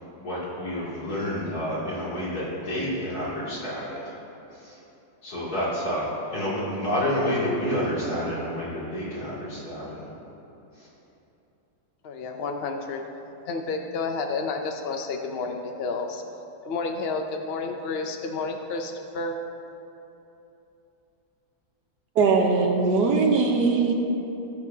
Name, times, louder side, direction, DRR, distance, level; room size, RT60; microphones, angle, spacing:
voice 1, 0.1-4.1 4.5-4.7 5.2-10.0 10.8-10.9, equal, 65° left, -9 dB, 3.2 m, -29 dB
voice 2, 12.0-13.0 13.4-16.2 16.6-19.4, left 4 dB, 80° left, 4 dB, 0.5 m, -30 dB
voice 3, 22.2-23.9, right 4 dB, 80° right, 2 dB, 1.5 m, -20 dB
17.0 x 7.1 x 2.7 m, 2.9 s
omnidirectional pair, 1.8 m